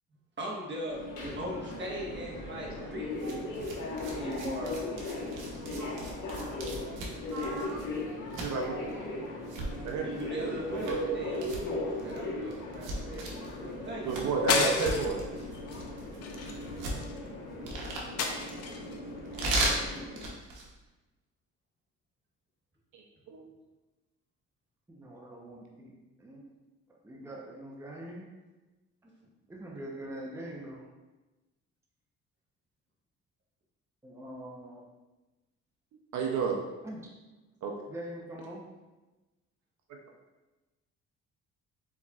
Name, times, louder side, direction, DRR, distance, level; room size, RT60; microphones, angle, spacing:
voice 1, 0.4-5.0 9.9-15.4, equal, 40° right, -3 dB, 1.3 m, -40 dB
Subway metro underground, 0.9-20.3, left 2 dB, 90° left, 1.3 m, -38 dB
sound 1, 3.1-20.8, right 1 dB, 90° right, 1.0 m, -38 dB
voice 2, 5.8-7.0 7.3-7.8 8.3-8.7 9.8-10.0 10.4-10.5 10.9-11.4 14.0-15.2 22.9-23.4 36.1-36.6 37.6-37.7, right 5 dB, 70° right, 1 dB, 0.6 m, -33 dB
voice 3, 7.3-7.9 8.5-9.4 19.9-20.3 24.9-25.9 26.2-26.4 27.0-28.3 29.0-29.1 29.5-30.9 34.0-34.9 36.8-37.1 37.9-38.6, right 1 dB, 10° right, -2 dB, 0.7 m, -44 dB
sound 2, 14.5-15.2 15.7-15.9 16.2-17.2 18.2-18.9, left 4 dB, 55° left, 0.6 m, -31 dB
4.6 x 4.2 x 2.4 m, 1.1 s
cardioid pair, 90°, 30 cm